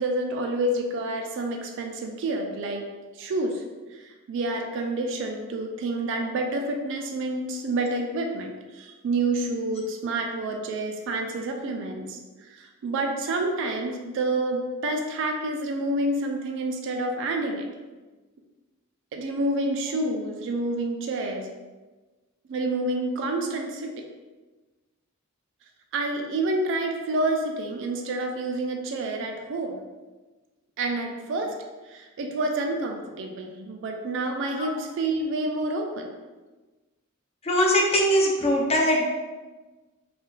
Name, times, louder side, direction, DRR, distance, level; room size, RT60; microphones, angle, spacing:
voice 1, 0.0-2.9 3.2-3.6 3.9-17.7 19.1-21.5 22.5-23.9 25.9-29.8 30.8-31.6 31.9-36.1, right 2 dB, 65° right, 3 dB, 0.3 m, -28 dB
voice 2, 37.4-39.0, equal, 30° left, -1 dB, 0.4 m, -21 dB
2.3 x 2.2 x 3.0 m, 1.2 s
head